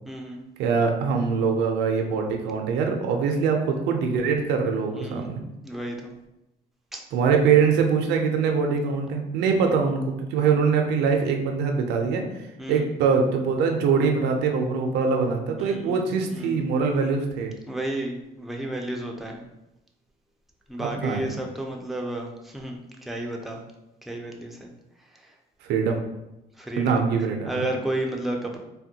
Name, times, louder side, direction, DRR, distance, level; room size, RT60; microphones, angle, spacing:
voice 1, 0.1-0.4 4.9-5.3 5.6-6.1 6.9-7.0 12.6-12.8 15.6-15.9 16.3-16.6 17.7-19.4 20.7-22.8 23.1-23.6 24.1-24.7 26.7-26.9 27.5-28.6, right 1 dB, ahead, 0 dB, 0.4 m, -31 dB
voice 2, 0.6-5.4 7.1-12.2 12.7-17.5 20.8-21.3 25.7-26.0 26.8-27.7, right 5 dB, 80° right, 3 dB, 0.4 m, -23 dB
3.3 x 2.2 x 2.7 m, 0.91 s
cardioid pair, 110°, 17 cm